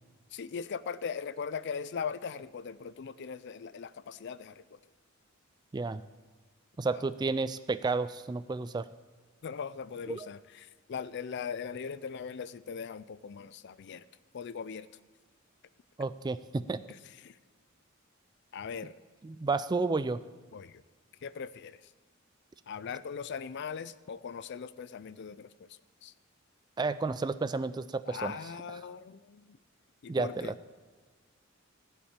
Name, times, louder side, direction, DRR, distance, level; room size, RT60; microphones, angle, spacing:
voice 1, 0.3-4.8 6.9-7.1 9.4-14.0 14.3-14.9 16.9-17.4 18.5-19.0 20.5-20.8 21.2-21.9 22.7-26.1 28.1-29.6 30.0-30.5, left 6 dB, 55° left, 17 dB, 0.4 m, -40 dB
voice 2, 6.8-8.9 10.1-10.3 16.0-16.8 19.2-20.2 26.8-28.4 30.1-30.5, right 3 dB, 20° right, 14 dB, 0.3 m, -31 dB
16.5 x 5.8 x 8.9 m, 1.5 s
head